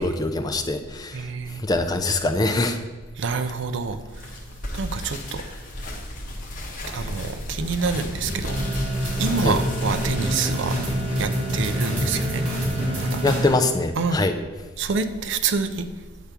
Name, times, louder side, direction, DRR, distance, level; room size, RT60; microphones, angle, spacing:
voice 1, 0.0-1.3 1.6-2.8 9.4-9.6 13.2-14.3, left 2 dB, 20° left, 7 dB, 0.4 m, -23 dB
voice 2, 1.1-1.6 3.2-4.0 4.7-5.4 6.9-8.6 9.2-10.7 11.2-12.4 12.9-13.2 14.0-14.2 14.8-15.9, right 4 dB, 60° right, 10 dB, 0.5 m, -27 dB
sound 1, 4.1-11.1, left 1 dB, 40° left, 1.0 m, -34 dB
sound 2, 8.2-13.5, equal, 90° right, 2.1 m, -31 dB
sound 3, 8.4-13.6, equal, 5° right, 1.6 m, -27 dB
8.2 x 3.4 x 5.9 m, 1.3 s
head